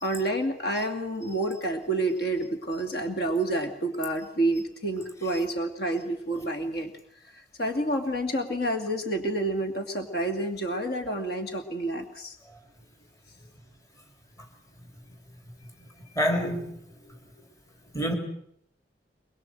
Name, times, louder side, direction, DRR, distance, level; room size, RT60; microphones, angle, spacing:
voice 1, 0.0-6.9 7.3-12.4, right 1 dB, 60° left, 2.5 m, -29 dB
voice 2, 16.2-16.7 17.9-18.1, equal, 20° left, 3.4 m, -26 dB
23.0 x 22.5 x 7.8 m
head